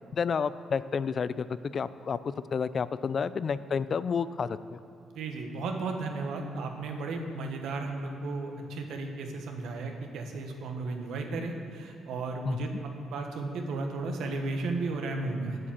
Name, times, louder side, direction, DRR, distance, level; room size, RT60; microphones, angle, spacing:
voice 1, 0.1-1.5 1.7-2.2 2.5-4.8 12.5-12.6, left 6 dB, 45° left, 15 dB, 0.3 m, -30 dB
voice 2, 5.1-12.7 13.1-15.6, right 3 dB, 80° right, 3 dB, 1.3 m, -34 dB
8.2 x 7.5 x 7.4 m, 2.9 s
cardioid pair, 90°, 0 cm